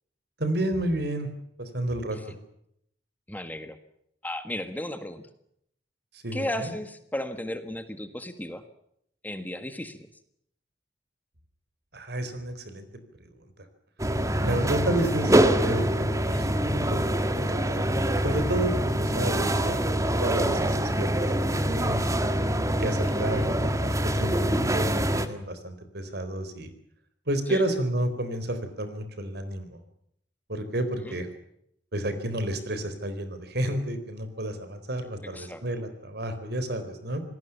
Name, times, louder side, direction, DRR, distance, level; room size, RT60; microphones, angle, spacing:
voice 1, 0.4-1.3 1.6-2.2 6.2-6.7 11.9-12.9 14.4-15.3 15.6-16.6 16.9-17.2 17.5-17.8 18.2-22.2 22.8-26.7 27.3-29.7 30.5-31.3 31.9-37.2, right 1 dB, 60° right, 10 dB, 4.1 m, -31 dB
voice 2, 3.3-3.8 4.2-5.2 6.3-8.6 9.2-10.0 16.2-16.5 19.8-19.9 23.0-23.4 27.5-27.6 31.0-31.2 35.2-35.6, left 1 dB, 10° left, 9 dB, 1.6 m, -35 dB
sound 1, 14.0-25.3, right 1 dB, 20° right, 1.8 m, -25 dB
27.0 x 19.0 x 7.1 m, 0.73 s
head